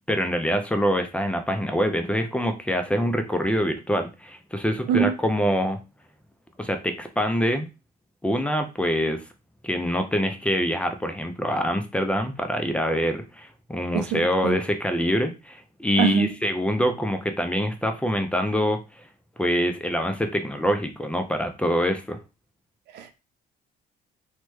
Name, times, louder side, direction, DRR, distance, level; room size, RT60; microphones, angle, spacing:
voice 1, 0.1-5.8 6.6-7.7 8.2-9.2 9.6-18.8 19.4-22.2, equal, 5° left, 0.4 m, -25 dB
voice 2, 13.9-14.6 16.0-16.3 22.9-23.2, right 8 dB, 80° right, 0.5 m, -24 dB
3.1 x 2.2 x 3.1 m
cardioid pair, 110°, 17 cm